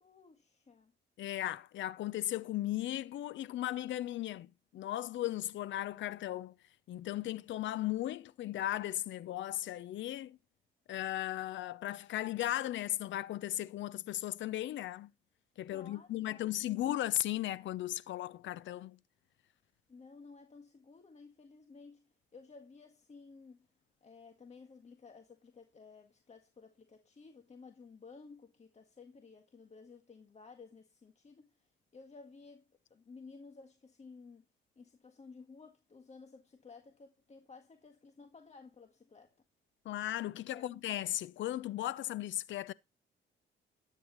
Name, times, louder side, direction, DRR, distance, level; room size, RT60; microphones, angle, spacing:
voice 1, 0.0-0.9 15.7-16.7 19.9-23.7 24.0-31.7 31.9-32.6 32.9-34.5 34.8-39.4 40.4-40.8, left 4 dB, 35° left, 1.7 m, -55 dB
voice 2, 1.2-4.5 4.7-6.5 6.9-10.4 10.9-15.1 15.6-19.0 39.8-42.7, left 13 dB, 70° left, 0.7 m, -36 dB
13.0 x 9.6 x 3.1 m
cardioid pair, 90°, 20 cm